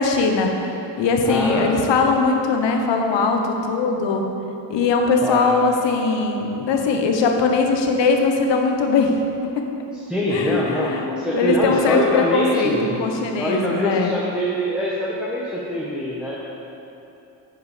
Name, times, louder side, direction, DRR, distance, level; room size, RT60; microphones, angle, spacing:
voice 1, 0.0-4.2 4.7-9.1 10.3-14.1, left 4 dB, 70° left, 3 dB, 1.1 m, -20 dB
voice 2, 1.2-1.9 5.2-5.5 9.9-13.0 13.4-16.4, equal, ahead, -6 dB, 1.3 m, -24 dB
10.5 x 4.8 x 5.0 m, 2.9 s
supercardioid pair, 70°, 44 cm